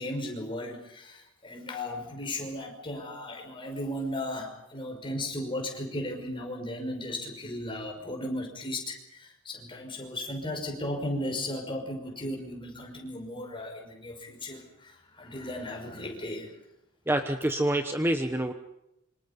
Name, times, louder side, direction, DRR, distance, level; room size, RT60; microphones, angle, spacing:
voice 1, 0.0-16.5, left 1 dB, 25° left, 3 dB, 5.8 m, -36 dB
voice 2, 17.1-18.5, right 1 dB, 10° right, 7 dB, 1.0 m, -27 dB
27.5 x 26.0 x 5.5 m, 0.85 s
head